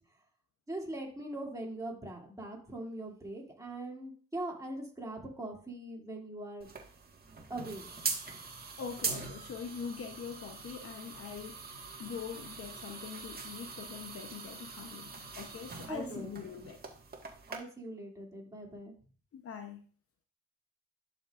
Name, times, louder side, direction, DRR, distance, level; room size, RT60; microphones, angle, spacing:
voice 1, 0.7-6.7 7.5-7.9 15.9-16.3 16.6-16.7 17.5-18.9, right 1 dB, 10° right, 2.7 m, -41 dB
sound 1, 6.6-17.6, right 4 dB, 30° right, 1.7 m, -42 dB
voice 2, 8.8-11.6 12.0-16.8 19.3-19.8, left 6 dB, 50° left, 0.9 m, -43 dB
11.0 x 5.3 x 2.5 m
cardioid pair, 90°, 30 cm